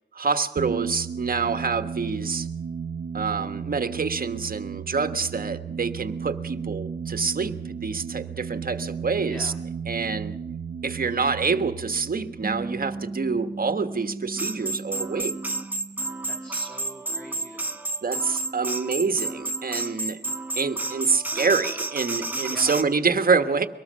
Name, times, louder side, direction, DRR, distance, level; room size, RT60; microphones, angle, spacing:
voice 1, 0.1-2.5 3.1-9.5 9.9-10.3 10.8-15.4 18.0-20.2 20.5-23.7, right 5 dB, 55° right, 9 dB, 1.4 m, -26 dB
sound 1, 0.6-13.8, right 7 dB, 80° right, 0.8 m, -34 dB
voice 2, 9.2-9.6 16.2-17.8 22.4-22.8, equal, 5° left, 0 dB, 2.5 m, -44 dB
sound 2, 12.4-17.1, right 3 dB, 30° right, 0.9 m, -38 dB
sound 3, 14.4-22.8, right 2 dB, 10° right, 1.5 m, -31 dB
23.5 x 19.0 x 6.4 m, 0.89 s
wide cardioid pair, 110°, 18 cm